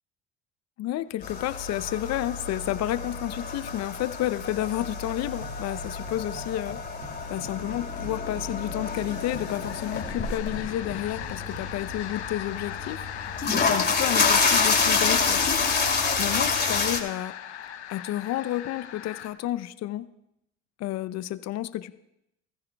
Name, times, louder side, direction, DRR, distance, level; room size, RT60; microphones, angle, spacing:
voice 1, 0.8-6.8 7.3-13.1 13.5-15.6 16.2-17.4 17.9-20.1 20.8-21.9, left 14 dB, 50° left, 14 dB, 0.7 m, -31 dB
sound 1, 1.2-17.0, left 4 dB, 30° left, 2.6 m, -28 dB
sound 2, 1.4-19.3, left 10 dB, 90° left, 0.9 m, -40 dB
sound 3, 5.2-12.2, right 1 dB, 80° right, 2.3 m, -47 dB
21.0 x 14.5 x 2.3 m, 0.82 s
hypercardioid pair, 65°, 33 cm